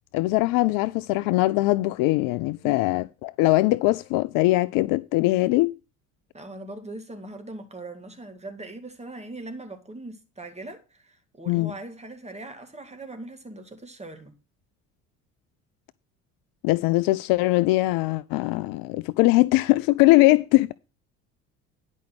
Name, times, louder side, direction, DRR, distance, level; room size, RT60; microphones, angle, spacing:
voice 1, 0.1-5.7 11.5-11.7 16.6-20.7, left 19 dB, 50° left, 0.5 m, -21 dB
voice 2, 6.3-14.3, right 2 dB, 15° right, 2.2 m, -40 dB
10.5 x 5.3 x 6.3 m
figure-of-eight pair, 60°, 43 cm